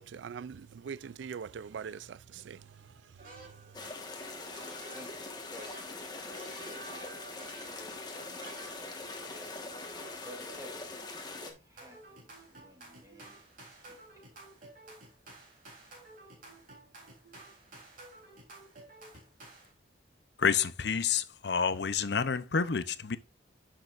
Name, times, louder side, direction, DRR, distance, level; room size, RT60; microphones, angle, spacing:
voice 1, 0.0-3.9, right 6 dB, 75° right, 0.4 m, -44 dB
sound 1, 3.2-4.0 4.5-9.4 9.7-11.0 11.8-19.7, right 2 dB, 45° right, 3.6 m, -52 dB
sound 2, 3.7-11.5, left 3 dB, 20° left, 1.4 m, -42 dB
voice 2, 4.9-7.2 7.7-10.9 11.3-14.0, equal, 20° right, 2.7 m, -53 dB
voice 3, 20.4-23.2, left 6 dB, 65° left, 0.7 m, -29 dB
10.5 x 6.5 x 2.5 m
head